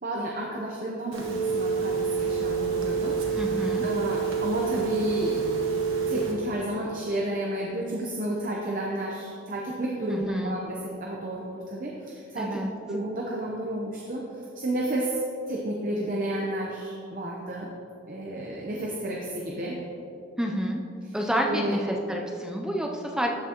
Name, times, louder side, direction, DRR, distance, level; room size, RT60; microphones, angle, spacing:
voice 1, 0.0-5.4 6.1-12.6 12.9-15.2 15.5-17.7 18.1-19.8 21.5-21.8, right 1 dB, 40° right, -2 dB, 0.7 m, -31 dB
Telephone, 1.1-6.3, right 5 dB, 80° right, 1.3 m, -27 dB
voice 2, 3.3-3.8 10.1-10.6 12.4-12.7 20.4-20.8 21.1-23.3, equal, 5° right, 0 dB, 0.4 m, -28 dB
13.5 x 6.0 x 2.9 m, 2.7 s
head